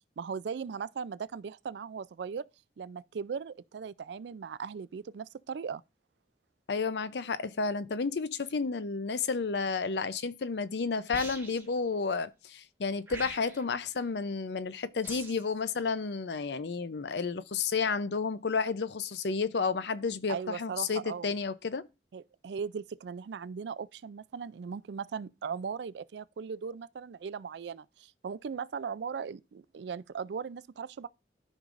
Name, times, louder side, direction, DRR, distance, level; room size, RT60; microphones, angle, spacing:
voice 1, 0.2-2.4 2.8-5.8 20.3-21.3 22.1-31.1, right 6 dB, 75° right, 0.4 m, -38 dB
voice 2, 6.7-21.9, left 4 dB, 75° left, 0.5 m, -31 dB
sound 1, 11.1-11.8 13.1-13.8 15.0-15.5, right 2 dB, 10° right, 1.4 m, -43 dB
13.5 x 5.4 x 2.5 m
head